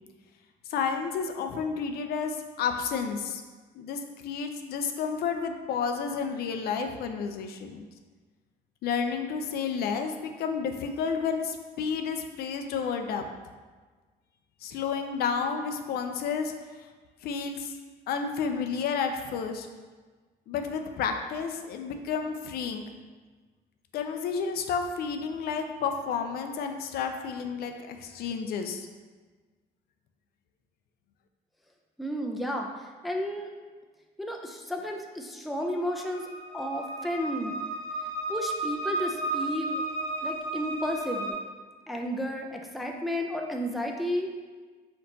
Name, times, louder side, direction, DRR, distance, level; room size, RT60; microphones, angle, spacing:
voice 1, 0.7-3.4 3.7-7.9 8.8-13.2 14.6-16.5 17.2-17.7 18.1-19.7 20.5-22.8 23.9-28.9, left 6 dB, 70° left, 5 dB, 0.5 m, -31 dB
voice 2, 32.0-33.5 34.2-36.3 36.5-37.5 38.3-39.8 40.2-41.4 41.9-44.3, equal, ahead, 1 dB, 0.4 m, -32 dB
sound 1, 35.6-41.3, right 2 dB, 15° right, 1.4 m, -33 dB
4.3 x 3.9 x 2.7 m, 1.4 s
cardioid pair, 110°, 17 cm